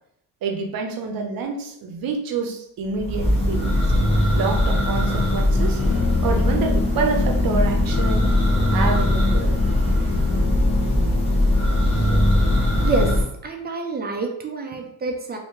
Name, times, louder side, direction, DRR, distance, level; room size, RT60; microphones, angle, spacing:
voice 1, 0.4-3.8 4.3-5.8 6.2-8.3 8.7-9.6, right 4 dB, 60° right, 4 dB, 0.7 m, -27 dB
Church bell, 2.9-13.2, left 1 dB, 15° left, 0.8 m, -20 dB
Brass instrument, 5.8-13.3, left 6 dB, 50° left, 0.5 m, -31 dB
voice 2, 12.8-13.1 13.4-15.4, right 3 dB, 25° right, 2 dB, 0.4 m, -26 dB
2.9 x 2.7 x 3.5 m, 0.74 s
cardioid pair, 160°, 40 cm